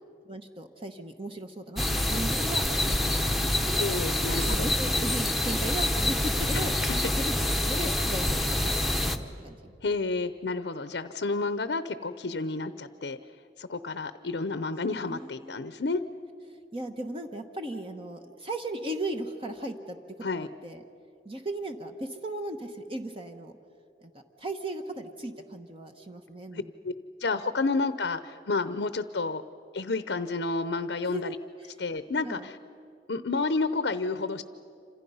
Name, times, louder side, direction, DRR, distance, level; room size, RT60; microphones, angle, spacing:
voice 1, 0.2-3.4 4.4-6.8 7.2-7.4 7.6-9.7 15.1-15.6 16.5-20.0 20.3-20.8 21.2-23.5 24.0-24.1 24.4-26.7 31.0-31.3 31.6-31.7 32.2-32.5, right 1 dB, 30° right, 5 dB, 1.0 m, -37 dB
sound 1, 1.8-9.2, left 1 dB, ahead, 1.0 m, -26 dB
voice 2, 3.8-4.7 6.5-6.6 9.8-13.2 13.6-16.0 20.2-20.5 26.5-26.9 27.2-29.4 29.7-31.4 31.8-32.6 33.1-34.4, left 3 dB, 75° left, 12 dB, 0.7 m, -30 dB
28.0 x 27.0 x 5.6 m, 2.6 s
head